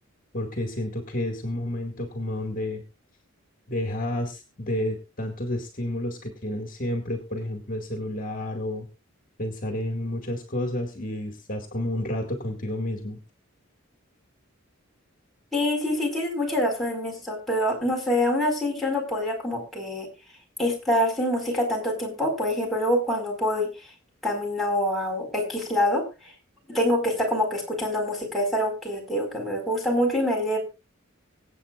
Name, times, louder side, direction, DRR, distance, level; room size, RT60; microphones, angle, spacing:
voice 1, 0.3-2.8 3.7-8.9 9.4-13.2, left 1 dB, 40° left, 4 dB, 2.0 m, -30 dB
voice 2, 15.5-20.1 20.6-23.7 24.2-26.0 26.7-30.6, left 1 dB, ahead, -3 dB, 4.8 m, -25 dB
25.0 x 8.4 x 2.4 m, 0.26 s
head